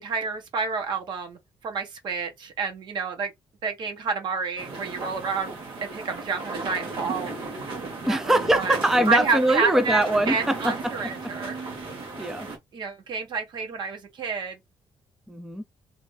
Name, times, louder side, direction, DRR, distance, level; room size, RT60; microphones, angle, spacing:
voice 1, 0.0-3.3 3.6-5.5 5.9-7.3 8.1-8.2 8.6-8.8 9.1-11.6 12.7-14.6, right 5 dB, 60° right, 1.2 m, -29 dB
sound 1, 4.6-12.6, right 3 dB, 75° right, 1.6 m, -35 dB
voice 2, 8.1-10.9 12.2-12.5 15.3-15.6, right 1 dB, 5° right, 0.4 m, -23 dB
3.1 x 2.7 x 3.2 m
cardioid pair, 110°, 9 cm